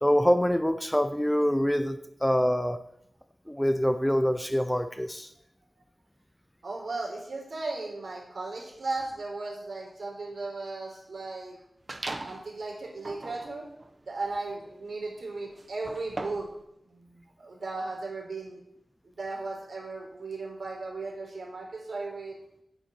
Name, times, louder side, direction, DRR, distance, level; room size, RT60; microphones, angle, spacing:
voice 1, 0.0-2.8 3.5-5.3, equal, 5° left, 9 dB, 0.6 m, -25 dB
voice 2, 6.6-11.6 12.1-13.6 14.1-16.5 16.9-18.6 19.0-22.4, right 3 dB, 70° right, -1 dB, 4.2 m, -36 dB
sound 1, 11.9-12.5 13.0-16.6, right 2 dB, 35° right, 1.0 m, -40 dB
9.0 x 7.3 x 8.8 m, 0.78 s
wide cardioid pair, 105°, 0 cm